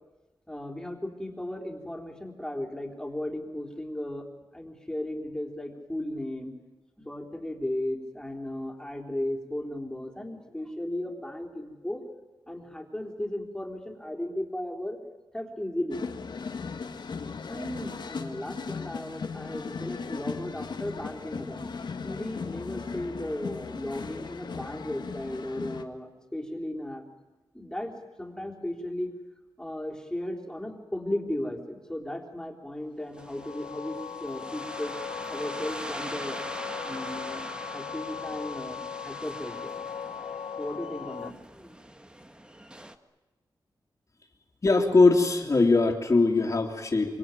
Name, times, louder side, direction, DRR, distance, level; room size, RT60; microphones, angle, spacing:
voice 1, 0.5-4.3 4.5-6.6 7.0-12.0 12.5-15.0 15.3-16.0 17.5-21.7 22.0-27.0 27.5-27.9 28.2-29.1 29.6-34.9 35.3-36.4 36.9-39.7 40.6-41.8, left 1 dB, 10° left, 2 dB, 3.7 m, -35 dB
sound 1, 15.9-25.8, left 5 dB, 65° left, 1.7 m, -37 dB
sound 2, 33.1-41.3, left 7 dB, 90° left, 0.8 m, -38 dB
sound 3, 33.2-42.9, right 1 dB, 10° right, 1.4 m, -42 dB
voice 2, 44.6-47.2, left 3 dB, 40° left, -5 dB, 3.0 m, -21 dB
25.5 x 25.0 x 9.1 m, 1.1 s
wide cardioid pair, 105°, 8 cm